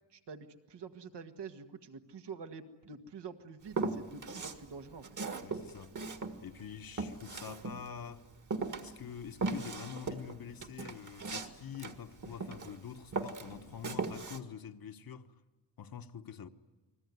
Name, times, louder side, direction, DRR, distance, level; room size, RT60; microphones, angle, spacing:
voice 1, 0.1-5.1, right 5 dB, 75° right, 1.8 m, -47 dB
Walk footsteps, 3.7-4.6 5.0-8.1 8.5-12.8 13.1-14.4, right 4 dB, 45° right, 1.9 m, -38 dB
voice 2, 5.4-6.0 6.4-8.2 8.8-15.3 15.8-16.5, left 8 dB, 55° left, 1.2 m, -46 dB
29.5 x 21.0 x 9.6 m
wide cardioid pair, 130°, 42 cm